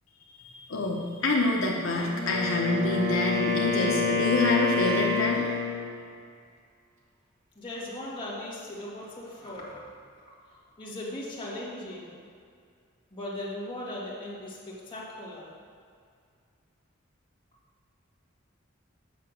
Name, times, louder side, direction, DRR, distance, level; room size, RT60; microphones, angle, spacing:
voice 1, 0.4-5.5, left 2 dB, 75° left, -2 dB, 1.0 m, -27 dB
Wind instrument woodwind instrument, 2.0-5.9, left 4 dB, 35° right, 1.4 m, -27 dB
voice 2, 7.6-10.3 10.7-12.2 13.1-15.5, left 1 dB, 25° left, -7 dB, 2.1 m, -38 dB
8.1 x 5.9 x 6.5 m, 2.2 s
head